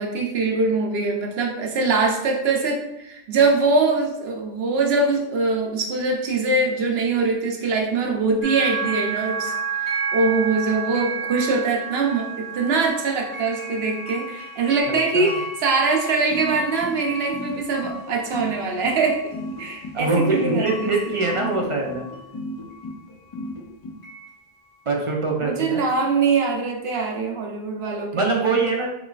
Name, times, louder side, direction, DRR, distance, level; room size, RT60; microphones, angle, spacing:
voice 1, 0.0-9.5 9.8-19.2 19.6-20.9 21.2-21.6 25.4-28.3, right 3 dB, 75° right, 1 dB, 0.9 m, -23 dB
sound 1, 8.4-23.5 24.0-24.4, right 4 dB, 80° left, 1.4 m, -33 dB
sound 2, 16.3-23.9, left 2 dB, 45° left, 0.3 m, -34 dB
voice 2, 19.9-22.1 24.9-25.8 28.1-28.9, right 3 dB, 55° right, 0 dB, 0.3 m, -23 dB
3.8 x 3.0 x 2.3 m, 0.85 s
omnidirectional pair, 1.1 m